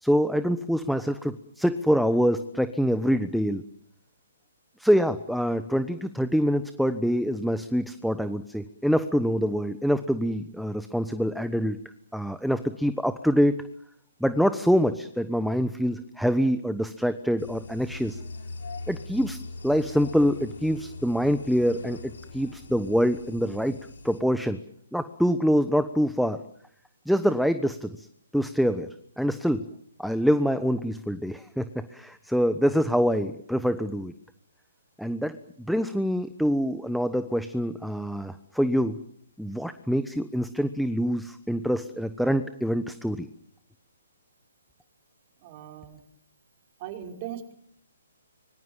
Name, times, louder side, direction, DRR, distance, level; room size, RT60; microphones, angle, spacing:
voice 1, 0.0-3.6 4.8-11.8 12.1-13.6 14.2-18.2 18.9-19.4 19.6-23.8 24.0-24.6 24.9-26.4 27.1-28.1 28.3-28.9 29.2-29.7 30.0-34.1 35.0-39.0 39.4-43.3, equal, ahead, 11 dB, 1.1 m, -25 dB
sound 1, 17.4-24.2, left 3 dB, 75° left, 7.0 m, -41 dB
voice 2, 45.4-46.0 46.8-47.5, right 9 dB, 35° right, 3 dB, 5.5 m, -39 dB
25.5 x 24.0 x 7.5 m, 0.70 s
hypercardioid pair, 140°, 0 cm